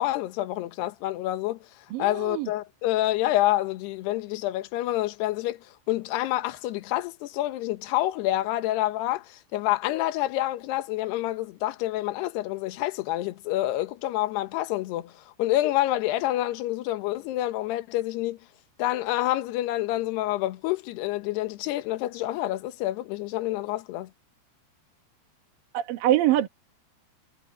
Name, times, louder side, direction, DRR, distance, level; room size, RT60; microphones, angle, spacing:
voice 1, 0.0-1.6 2.0-5.6 5.9-18.4 18.8-24.1, left 15 dB, 75° left, 3.2 m, -28 dB
voice 2, 1.9-2.5 25.7-26.5, right 13 dB, 65° right, 2.8 m, -24 dB
omnidirectional pair, 4.9 m